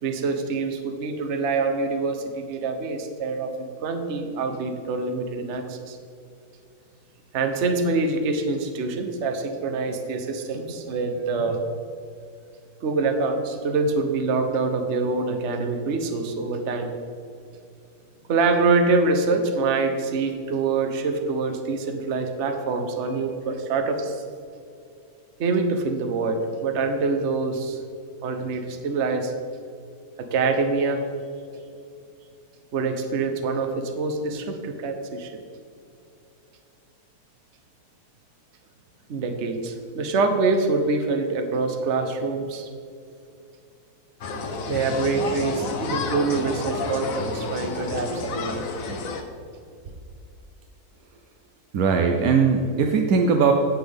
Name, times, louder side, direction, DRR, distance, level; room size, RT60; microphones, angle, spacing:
voice 1, 0.0-6.0 7.3-11.6 12.8-16.9 18.3-24.2 25.4-27.8 28.2-29.3 30.2-31.1 32.7-35.3 39.1-42.7 44.7-48.7, right 3 dB, 55° right, 5 dB, 1.1 m, -25 dB
sound 1, 44.2-49.2, left 3 dB, 65° left, 1.2 m, -30 dB
voice 2, 51.7-53.5, right 5 dB, 70° right, 4 dB, 1.1 m, -19 dB
17.0 x 6.0 x 3.5 m, 2.4 s
omnidirectional pair, 1.6 m